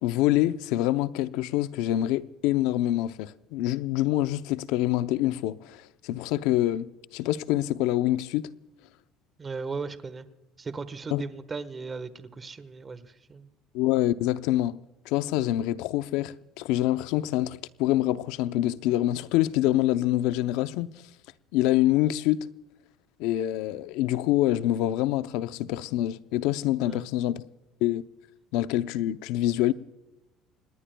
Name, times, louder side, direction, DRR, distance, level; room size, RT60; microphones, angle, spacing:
voice 1, 0.0-8.5 11.1-11.2 13.7-14.8 15.1-20.9 21.5-22.5 23.2-27.4 27.8-28.0 28.5-29.7, left 14 dB, 80° left, 0.6 m, -26 dB
voice 2, 9.4-10.3 10.6-13.5 26.8-27.1, right 4 dB, 25° right, 1.3 m, -37 dB
28.5 x 19.5 x 2.3 m
cardioid pair, 115°, 0 cm